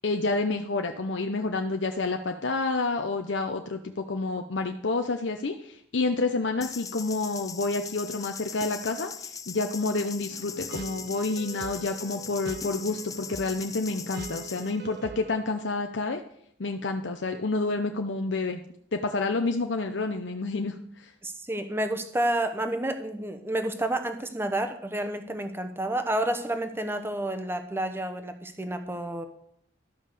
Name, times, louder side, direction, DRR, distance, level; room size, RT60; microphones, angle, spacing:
voice 1, 0.0-16.2 16.6-18.6 18.9-21.1, left 3 dB, 80° left, 5 dB, 0.7 m, -29 dB
sound 1, 6.6-14.7, left 6 dB, 20° left, 0.4 m, -40 dB
sound 2, 10.3-15.4, right 5 dB, 55° right, 0.5 m, -43 dB
voice 2, 21.2-29.2, right 1 dB, 15° right, 8 dB, 0.9 m, -30 dB
12.5 x 5.6 x 6.6 m, 0.69 s
head